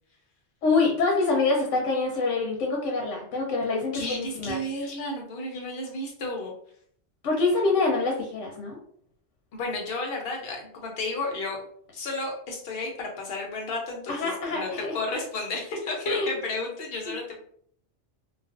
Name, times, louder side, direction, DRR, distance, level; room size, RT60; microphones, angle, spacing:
voice 1, 0.6-4.6 7.2-8.8 14.1-14.9 16.1-16.3 17.0-17.2, left 3 dB, 85° left, 1 dB, 0.9 m, -25 dB
voice 2, 3.9-6.5 9.5-11.6 11.9-17.4, left 2 dB, 60° left, 1 dB, 0.8 m, -32 dB
2.4 x 2.3 x 2.4 m, 0.62 s
omnidirectional pair, 1.2 m